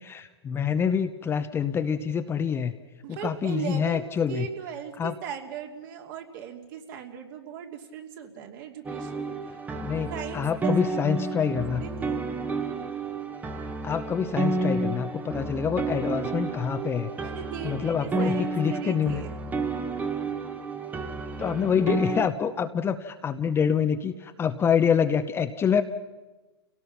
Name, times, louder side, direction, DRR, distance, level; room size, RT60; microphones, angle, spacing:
voice 1, 0.0-2.8 3.1-4.5 5.0-5.1 9.8-11.8 13.8-17.1 17.6-19.2 21.4-25.8, left 7 dB, 15° left, 8 dB, 0.8 m, -26 dB
voice 2, 3.0-9.4 10.1-11.1 11.4-12.2 17.1-19.4, right 8 dB, 50° right, 3 dB, 2.7 m, -38 dB
sound 1, 8.8-22.3, right 3 dB, 10° right, 1.2 m, -31 dB
29.5 x 17.5 x 5.9 m, 1.2 s
hypercardioid pair, 120°, 14 cm